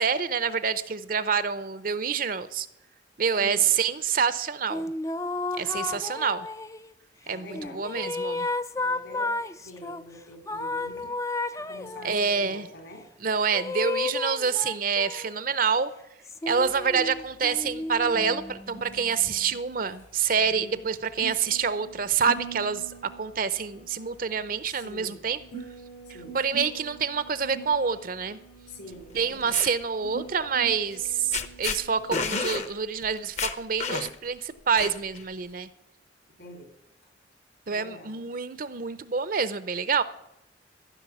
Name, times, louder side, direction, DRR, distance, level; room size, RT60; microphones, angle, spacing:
voice 1, 0.0-2.7 3.2-4.9 5.6-6.5 7.3-8.5 12.0-12.7 13.2-15.9 16.5-22.8 23.2-25.4 26.3-28.4 29.1-35.7 37.7-40.0, right 6 dB, 50° right, 0.7 m, -27 dB
voice 2, 3.4-3.7 5.6-6.3 7.3-8.0 8.8-11.2 11.6-13.1 20.4-20.8 24.7-25.3 26.1-26.4 28.7-29.6 36.4-36.7 37.7-38.3, left 1 dB, 70° left, 3.7 m, -45 dB
sound 1, 4.7-6.9 7.5-10.0 10.5-12.3 13.5-15.4 16.2-18.5, left 3 dB, 15° left, 0.4 m, -32 dB
sound 2, 16.5-32.6, right 5 dB, 85° left, 3.5 m, -45 dB
sound 3, 29.2-29.7 30.9-31.1 31.3-31.8 32.1-32.7 33.0-33.1 33.4-34.3 34.8-35.2, left 5 dB, 40° left, 0.9 m, -30 dB
15.0 x 6.2 x 9.4 m
head